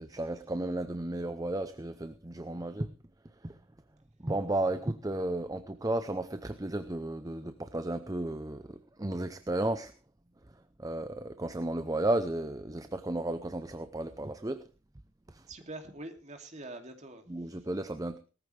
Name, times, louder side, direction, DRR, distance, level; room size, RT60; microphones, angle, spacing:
voice 1, 0.0-2.9 3.4-3.6 4.2-9.9 10.8-14.6 15.3-15.4 17.3-18.2, right 1 dB, 15° right, 0.6 m, -33 dB
voice 2, 15.4-17.7, right 2 dB, 35° right, 2.5 m, -45 dB
19.0 x 14.0 x 3.3 m
head